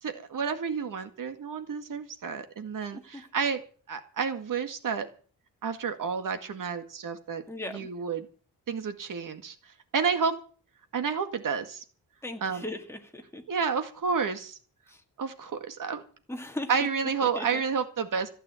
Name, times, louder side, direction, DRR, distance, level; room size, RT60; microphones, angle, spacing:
voice 1, 0.0-3.6 3.9-5.1 5.6-7.4 7.7-8.3 8.7-9.6 9.9-10.3 10.9-11.8 12.4-12.6 13.5-14.6 15.2-16.0 16.7-18.3, right 6 dB, 60° right, 8 dB, 2.0 m, -30 dB
voice 2, 2.9-3.2 7.5-7.9 12.2-13.4 14.9-15.0 16.3-16.9 17.4-17.6, left 1 dB, 5° left, 3 dB, 2.0 m, -38 dB
15.5 x 8.6 x 8.2 m, 0.42 s
wide cardioid pair, 180°, 36 cm